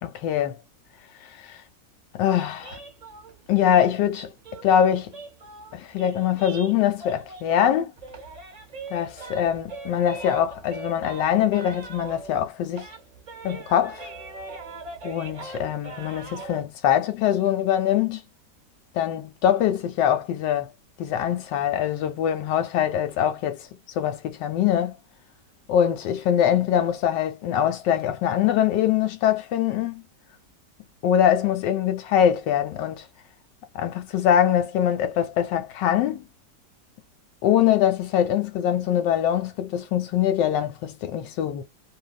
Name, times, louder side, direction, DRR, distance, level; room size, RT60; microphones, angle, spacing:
voice 1, 0.0-0.6 1.2-1.6 2.1-2.8 3.5-4.3 4.6-5.1 5.7-7.9 8.9-12.9 13.4-14.1 15.0-18.2 18.9-20.7 21.0-23.7 23.9-25.0 25.7-30.0 31.0-33.1 33.7-36.2 37.4-41.6, left 10 dB, 90° left, 1.3 m, -23 dB
sound 1, 2.6-7.7 8.0-12.5 12.7-16.6, right 3 dB, 55° right, 0.4 m, -41 dB
2.7 x 2.3 x 2.3 m
omnidirectional pair, 1.9 m